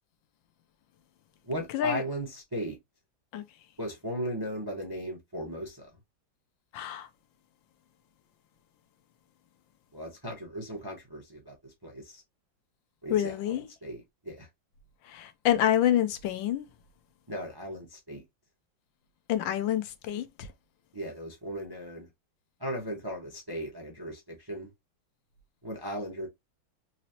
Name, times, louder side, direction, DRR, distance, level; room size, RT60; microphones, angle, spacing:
voice 1, 1.5-2.8 3.8-5.9 9.9-12.2 13.0-14.5 17.3-18.2 20.9-22.1 22.6-24.7 25.6-26.3, equal, 20° right, 0.6 m, -37 dB
voice 2, 6.7-7.1 13.1-13.7 15.1-16.6 19.3-20.5, left 11 dB, 80° left, 1.4 m, -27 dB
4.0 x 3.1 x 2.7 m
omnidirectional pair, 2.1 m